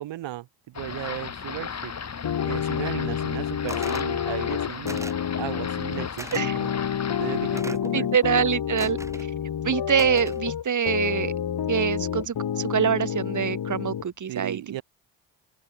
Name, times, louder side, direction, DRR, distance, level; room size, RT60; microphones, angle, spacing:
voice 1, 0.0-1.9 2.4-5.0 5.4-6.7 7.2-8.1 14.3-14.8, right 14 dB, 85° right, 1.7 m, -35 dB
sound 1, 0.7-7.6, left 6 dB, 35° left, 1.5 m, -36 dB
sound 2, 2.2-14.0, left 9 dB, 60° left, 2.2 m, -29 dB
sound 3, 3.7-4.1 4.9-5.3 6.2-6.4 7.6-7.9 8.8-9.3 10.0-10.4, right 1 dB, 5° right, 5.8 m, -39 dB
voice 2, 7.9-9.0 9.6-11.3 11.7-14.8, right 7 dB, 45° right, 1.3 m, -25 dB
open air
cardioid pair, 65°, 43 cm